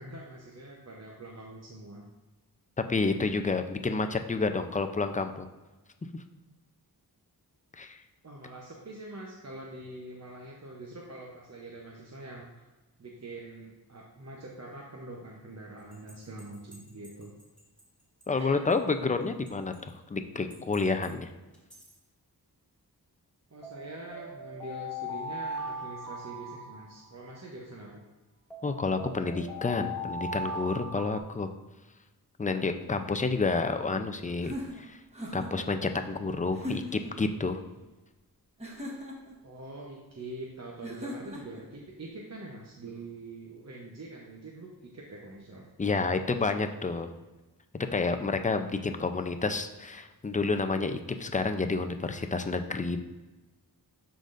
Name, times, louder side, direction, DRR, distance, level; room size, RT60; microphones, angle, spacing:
voice 1, 0.0-2.0 8.2-12.5 13.0-17.3 18.3-18.6 23.5-28.0 39.4-45.7 48.8-49.5, right 2 dB, 40° right, -2 dB, 0.9 m, -44 dB
voice 2, 2.9-5.5 7.8-8.0 18.3-21.3 28.6-31.5 32.4-35.0 35.3-37.6 45.8-47.1 47.9-53.0, left 3 dB, 20° left, 7 dB, 0.5 m, -29 dB
sound 1, 15.9-17.8 18.2-18.3 18.7-18.8 19.5-19.9 20.5-21.1 21.5-21.9 23.6-27.4 28.5-31.2, left 1 dB, 5° left, 2.0 m, -39 dB
sound 2, 34.4-35.7 36.5-37.1 38.6-39.4 40.8-41.6, equal, 15° right, 1.3 m, -39 dB
11.5 x 3.9 x 2.5 m, 1.2 s
wide cardioid pair, 85°, 39 cm